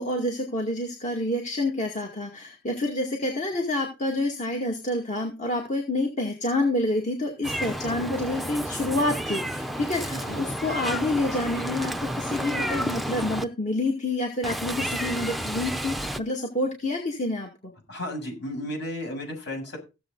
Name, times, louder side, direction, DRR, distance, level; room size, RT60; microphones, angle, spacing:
voice 1, 0.0-17.5, left 1 dB, 40° left, 1 dB, 2.3 m, -28 dB
Meow, 7.4-13.4 14.4-16.2, equal, ahead, 0.7 m, -31 dB
voice 2, 10.1-10.4 17.9-19.8, left 1 dB, 60° left, 2 dB, 7.4 m, -33 dB
16.0 x 7.7 x 4.0 m, 0.28 s
head